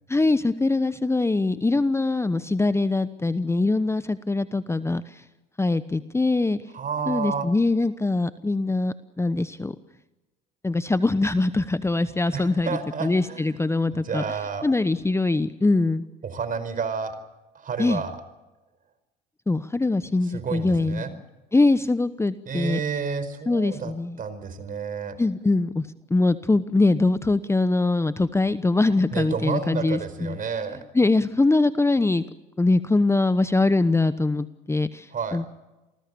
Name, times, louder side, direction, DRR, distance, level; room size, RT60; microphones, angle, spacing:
voice 1, 0.1-5.2 5.6-6.6 7.1-9.7 10.6-14.2 14.6-16.0 17.8-18.0 19.5-21.0 21.5-22.8 23.5-24.2 25.2-30.4 30.9-32.2 32.6-35.6, left 2 dB, 15° left, 14 dB, 1.0 m, -23 dB
voice 2, 6.7-7.5 12.3-13.5 13.9-14.7 16.2-17.2 17.5-18.2 20.2-21.1 22.4-23.9 24.2-25.2 29.1-30.8 35.1-35.5, right 6 dB, 40° right, 12 dB, 5.1 m, -30 dB
28.5 x 19.5 x 7.0 m, 1.0 s
hypercardioid pair, 70°, 21 cm